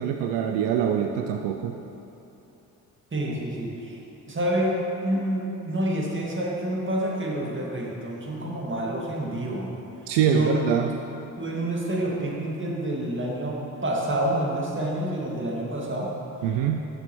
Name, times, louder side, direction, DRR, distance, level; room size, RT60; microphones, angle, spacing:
voice 1, 0.0-1.8 10.1-10.9 16.4-16.8, right 8 dB, 70° right, 4 dB, 0.6 m, -24 dB
voice 2, 3.1-4.0 4.3-9.7 10.2-10.6 11.4-16.1, right 1 dB, 25° right, -3 dB, 2.1 m, -28 dB
12.5 x 6.7 x 3.1 m, 2.9 s
hypercardioid pair, 45°, 44 cm